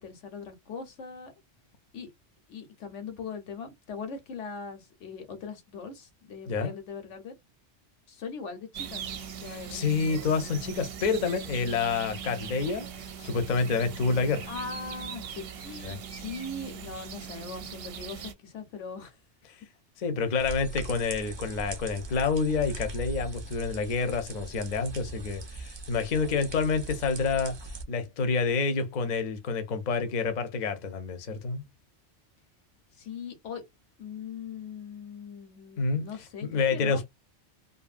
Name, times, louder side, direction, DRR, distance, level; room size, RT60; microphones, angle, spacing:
voice 1, 0.0-1.3 1.9-2.1 2.5-7.3 8.1-9.0 9.4-9.8 14.5-19.2 20.3-20.5 33.0-33.6 34.0-37.0, left 5 dB, 90° left, 1.2 m, -40 dB
sound 1, 8.7-18.3, right 7 dB, 65° right, 0.7 m, -40 dB
voice 2, 9.4-12.9 13.2-14.5 15.8-16.0 20.0-27.5 27.9-31.6 35.8-36.0 36.4-37.1, left 4 dB, 45° left, 0.7 m, -28 dB
sound 2, 20.4-27.8, right 3 dB, 40° right, 0.3 m, -40 dB
2.6 x 2.6 x 2.4 m
omnidirectional pair, 1.2 m